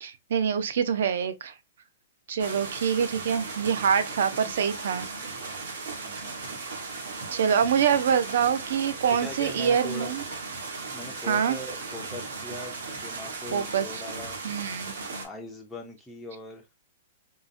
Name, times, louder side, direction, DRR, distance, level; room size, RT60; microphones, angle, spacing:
voice 1, 0.0-1.5 2.3-5.1 7.3-10.2 11.3-11.6 13.5-14.0 14.4-14.9, right 7 dB, 60° right, 0.5 m, -25 dB
sound 1, 2.4-15.3, right 3 dB, 75° right, 1.2 m, -37 dB
voice 2, 2.6-3.0 6.0-6.6 8.4-8.5 9.2-10.2 10.9-14.4 15.2-16.6, left 2 dB, ahead, 0.4 m, -41 dB
3.8 x 2.1 x 2.4 m
hypercardioid pair, 180°, 0 cm